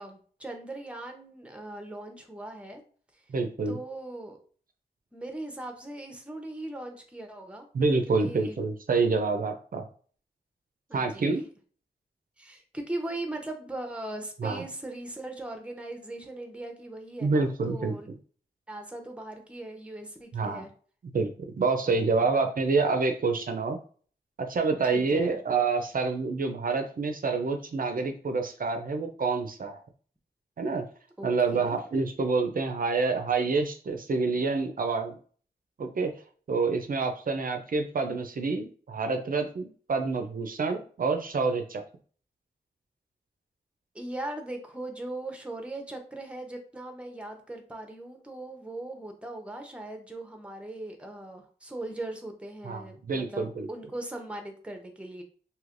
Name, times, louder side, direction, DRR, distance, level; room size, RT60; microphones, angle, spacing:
voice 1, 0.0-2.8 3.7-4.4 5.1-7.7 8.1-8.6 10.9-11.3 12.4-18.1 18.7-20.7 21.9-22.3 24.9-25.4 31.2-31.8 43.9-55.2, right 2 dB, 5° right, 4 dB, 0.6 m, -39 dB
voice 2, 3.3-3.8 7.7-9.9 10.9-11.4 14.4-14.6 17.2-17.9 20.3-20.6 21.1-23.8 24.4-29.8 30.6-30.8 31.2-35.2 35.8-36.1 36.5-41.8 52.6-53.7, right 4 dB, 55° right, 5 dB, 0.4 m, -27 dB
3.2 x 2.8 x 2.5 m, 0.43 s
wide cardioid pair, 90°, 18 cm